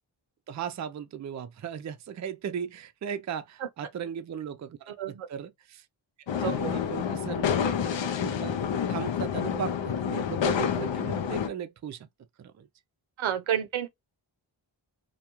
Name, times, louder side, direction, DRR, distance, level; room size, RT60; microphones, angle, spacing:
voice 1, 0.5-5.8 6.4-7.5 8.2-8.6 8.9-12.1 12.4-12.7, right 8 dB, 40° right, 0.4 m, -37 dB
voice 2, 4.9-5.3 6.4-6.7 13.2-13.9, right 9 dB, 85° right, 0.6 m, -30 dB
sound 1, 6.3-11.5, left 7 dB, 70° left, 0.6 m, -28 dB
2.3 x 2.3 x 2.8 m
cardioid pair, 55°, 47 cm